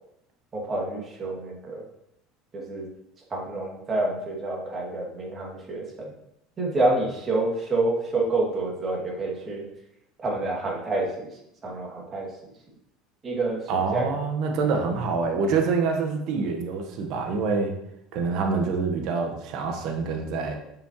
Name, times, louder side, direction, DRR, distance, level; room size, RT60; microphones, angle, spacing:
voice 1, 0.5-1.8 2.5-2.9 3.3-6.1 6.6-9.7 10.2-11.3 11.6-12.3 13.2-14.1, right 2 dB, 30° right, -2 dB, 2.5 m, -28 dB
voice 2, 13.7-17.7 18.1-20.6, right 4 dB, 60° right, 3 dB, 1.3 m, -26 dB
7.2 x 5.9 x 3.1 m, 0.79 s
supercardioid pair, 100°, 0 cm